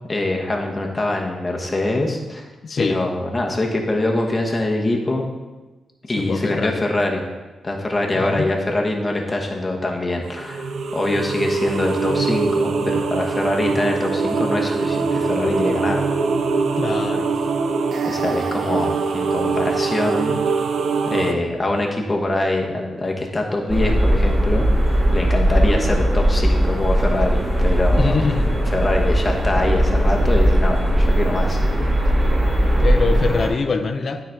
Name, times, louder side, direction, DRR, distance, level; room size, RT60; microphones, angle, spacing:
voice 1, 0.1-2.5 2.8-5.2 6.1-7.2 7.6-16.0 18.0-20.4 21.1-28.3 28.7-31.6, left 2 dB, 20° left, 0 dB, 1.1 m, -23 dB
voice 2, 2.6-3.1 6.2-6.8 8.1-8.5 16.8-17.3 28.0-28.5 32.8-34.2, left 4 dB, 45° left, 6 dB, 0.7 m, -23 dB
sound 1, 10.3-21.3, right 4 dB, 65° right, 0.6 m, -23 dB
sound 2, 23.7-33.5, equal, 25° right, 2.0 m, -18 dB
12.0 x 4.1 x 4.5 m, 1.2 s
cardioid pair, 115°, 0 cm